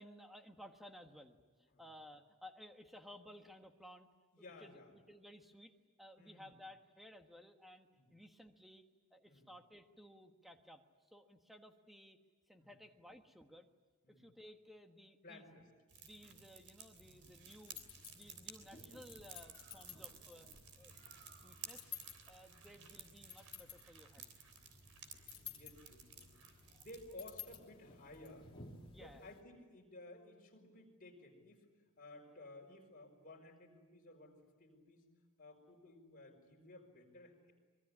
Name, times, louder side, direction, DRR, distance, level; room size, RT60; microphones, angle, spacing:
voice 1, 0.0-4.1 4.4-5.7 6.0-8.8 9.1-10.8 11.1-12.2 12.5-13.7 14.1-15.6 16.0-17.8 18.1-20.5 20.8-21.1 21.4-21.9 22.3-24.3 26.7-26.8 28.9-29.3, equal, ahead, 5 dB, 1.4 m, -57 dB
voice 2, 4.3-4.9 6.2-6.6 7.9-8.2 9.3-9.5 12.6-12.7 14.0-14.3 15.2-15.7 16.2-16.4 25.3-26.3 26.8-28.5 28.9-31.7 32.0-35.1 35.4-37.5, left 2 dB, 40° left, 1 dB, 5.1 m, -56 dB
sound 1, 15.9-27.1, right 6 dB, 80° right, 3.4 m, -56 dB
sound 2, 16.9-29.4, left 7 dB, 25° left, 3.0 m, -55 dB
Bird, 19.1-24.2, right 4 dB, 50° right, 5.3 m, -70 dB
25.0 x 22.5 x 9.9 m, 1.4 s
head